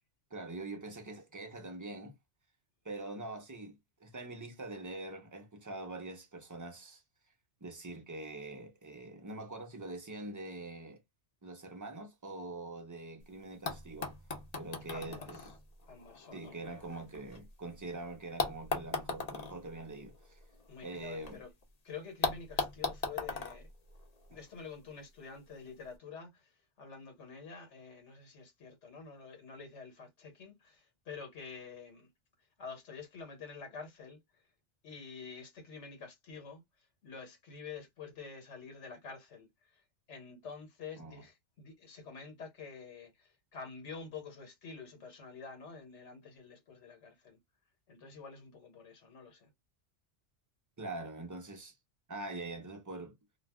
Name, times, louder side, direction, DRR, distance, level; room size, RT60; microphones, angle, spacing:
voice 1, 0.3-2.1 2.8-7.0 7.6-11.0 11.4-14.1 14.6-15.4 16.3-20.4 20.8-21.4 41.0-41.2 50.8-51.8 52.1-53.1, right 2 dB, 30° right, 0.3 m, -44 dB
sound 1, 13.2-13.3 13.7-17.7 18.4-21.3 21.6-21.7 22.2-24.6 25.6-25.7, left 3 dB, 40° left, 0.7 m, -39 dB
voice 2, 14.9-15.5 15.9-16.8 20.7-21.5 21.8-23.7 24.3-26.5 26.8-32.1 32.6-34.2 34.8-36.6 37.0-39.8 40.1-47.4 47.9-49.5, left 5 dB, 90° left, 1.2 m, -48 dB
2.3 x 2.3 x 3.4 m
omnidirectional pair, 1.2 m